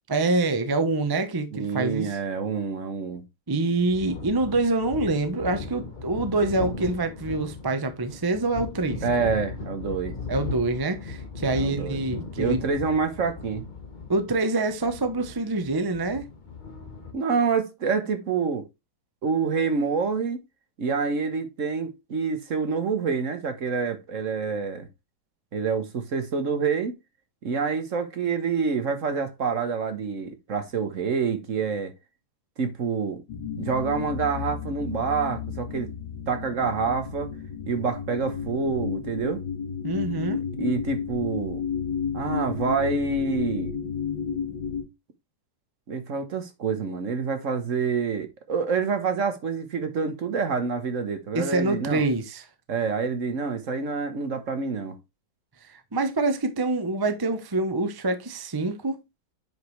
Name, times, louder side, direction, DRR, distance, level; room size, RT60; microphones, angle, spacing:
voice 1, 0.1-2.2 3.5-9.3 10.3-12.6 14.1-16.2 39.8-40.4 51.3-52.4 55.7-59.0, right 2 dB, 30° right, 0.4 m, -26 dB
voice 2, 1.5-3.2 9.0-10.2 11.5-12.0 12.4-13.7 17.1-18.7 19.2-20.4 20.8-24.9 25.5-27.0 27.4-31.9 32.6-33.2 33.6-35.9 36.3-37.3 37.7-39.4 40.6-41.6 42.1-43.8 45.9-52.0 52.7-55.0, right 5 dB, 50° right, 1.2 m, -27 dB
sound 1, 3.8-17.1, left 4 dB, 30° left, 1.0 m, -37 dB
sound 2, 33.3-44.8, left 7 dB, 70° left, 2.4 m, -32 dB
9.2 x 5.1 x 3.2 m
omnidirectional pair, 2.1 m